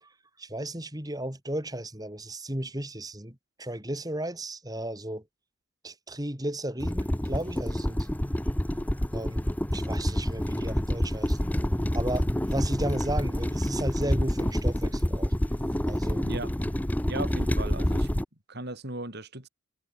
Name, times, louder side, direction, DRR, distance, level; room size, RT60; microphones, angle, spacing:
voice 1, 0.4-5.2 5.8-8.1 9.1-9.5 9.7-11.5 11.9-15.3 15.9-16.3, right 1 dB, 15° right, 3.0 m, -34 dB
sound 1, 6.8-18.2, equal, 5° left, 0.7 m, -28 dB
voice 2, 16.2-16.6 17.1-18.1 18.5-19.5, right 2 dB, 50° right, 4.9 m, -37 dB
head